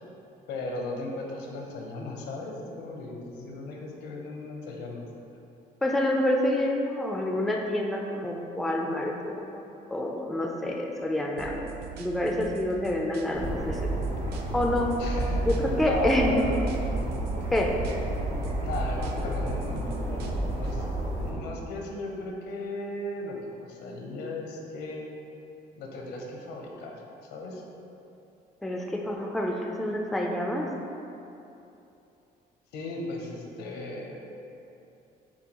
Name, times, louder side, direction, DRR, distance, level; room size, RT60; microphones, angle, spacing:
voice 1, 0.5-5.1 15.0-16.6 18.6-20.9 21.2-25.1 25.8-27.6 32.7-34.2, left 2 dB, 75° left, 0 dB, 0.7 m, -36 dB
voice 2, 5.8-9.6 9.9-13.8 14.5-14.9 15.5-16.4 17.5-17.8 28.6-30.7, left 1 dB, ahead, 1 dB, 0.3 m, -27 dB
sound 1, 11.4-13.5 13.7-15.8 16.1-18.2 18.4-20.7, right 8 dB, 70° right, 0.4 m, -43 dB
sound 2, 13.3-21.3, right 1 dB, 45° right, 0.9 m, -30 dB
6.9 x 2.3 x 2.9 m, 2.8 s
cardioid pair, 110°, 17 cm